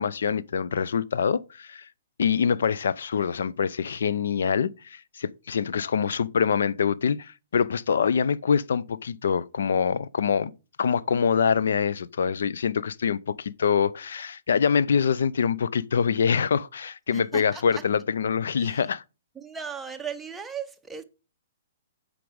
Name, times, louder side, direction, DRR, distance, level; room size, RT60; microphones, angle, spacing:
voice 1, 0.0-1.9 2.2-10.5 10.8-19.0, left 6 dB, 75° left, 0.5 m, -25 dB
voice 2, 17.1-17.8 18.6-18.9 19.3-21.0, right 7 dB, 5° right, 0.8 m, -37 dB
7.8 x 5.1 x 5.1 m
hypercardioid pair, 145°, 0 cm